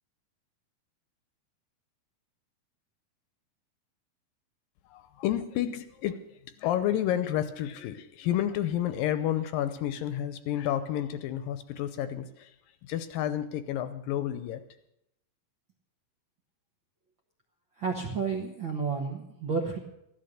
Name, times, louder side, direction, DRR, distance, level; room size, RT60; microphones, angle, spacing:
voice 1, 4.9-12.6 12.8-14.6, left 11 dB, 80° left, 11 dB, 2.3 m, -30 dB
voice 2, 17.8-19.8, right 5 dB, 60° right, 0 dB, 1.3 m, -31 dB
15.5 x 12.0 x 6.5 m, 0.79 s
omnidirectional pair, 4.3 m